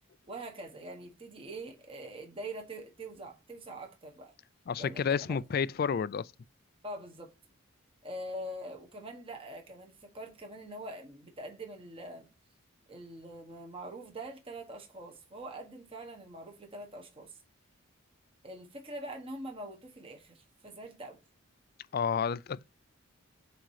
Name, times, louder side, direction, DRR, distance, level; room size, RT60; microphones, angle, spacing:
voice 1, 0.3-4.3 4.8-5.4 6.8-7.3 8.0-12.3 12.9-17.4 18.4-21.2, right 1 dB, 25° right, 1.4 m, -44 dB
voice 2, 4.7-6.3 21.9-22.7, left 6 dB, 45° left, 0.3 m, -30 dB
7.6 x 2.9 x 4.8 m
head